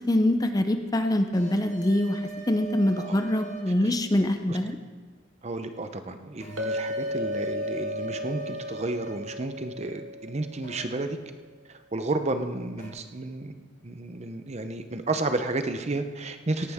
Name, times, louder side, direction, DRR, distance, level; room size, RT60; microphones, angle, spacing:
voice 1, 0.1-4.8, left 1 dB, 20° left, 8 dB, 0.5 m, -24 dB
sound 1, 1.3-3.7 6.4-9.1 10.6-10.8 12.8-12.9, right 5 dB, 35° left, 2.1 m, -41 dB
voice 2, 5.4-11.2 11.7-13.5 13.8-16.7, right 2 dB, 35° right, 8 dB, 0.7 m, -32 dB
Chink clink, 6.6-10.7, left 1 dB, 85° right, 1.7 m, -34 dB
18.0 x 11.5 x 3.6 m, 1.4 s
head